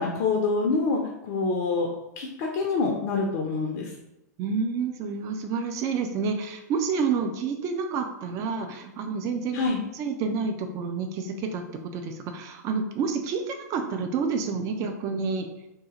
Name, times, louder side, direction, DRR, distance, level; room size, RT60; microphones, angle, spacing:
voice 1, 0.0-1.9 2.2-3.9 9.5-9.8, left 4 dB, 45° left, 0 dB, 0.5 m, -26 dB
voice 2, 4.4-9.6 9.9-11.6 11.9-15.5, right 5 dB, 35° right, 5 dB, 0.5 m, -29 dB
2.8 x 2.7 x 3.7 m, 0.88 s
figure-of-eight pair, 95°, 9 cm